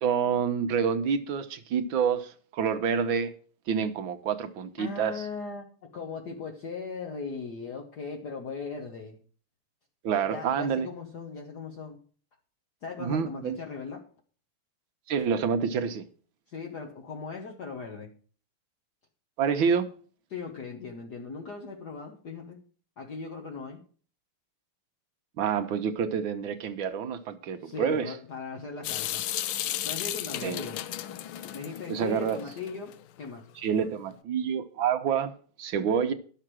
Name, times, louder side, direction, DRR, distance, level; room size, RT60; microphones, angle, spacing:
voice 1, 0.0-3.3 3.7-5.2 10.0-10.9 13.0-13.6 15.1-16.0 19.4-19.9 25.4-28.1 30.4-30.6 31.9-32.4 33.6-36.1, right 7 dB, 70° right, 1.6 m, -28 dB
voice 2, 4.8-9.2 10.2-12.0 12.8-14.1 16.5-18.1 20.3-22.6 23.0-23.8 27.6-29.2 29.8-30.8 31.5-33.5, left 5 dB, 50° left, 1.7 m, -38 dB
Water tap faucet / Sink (filling or washing) / Drip, 28.8-32.9, left 12 dB, 80° left, 1.5 m, -34 dB
11.5 x 6.7 x 6.1 m
omnidirectional pair, 2.4 m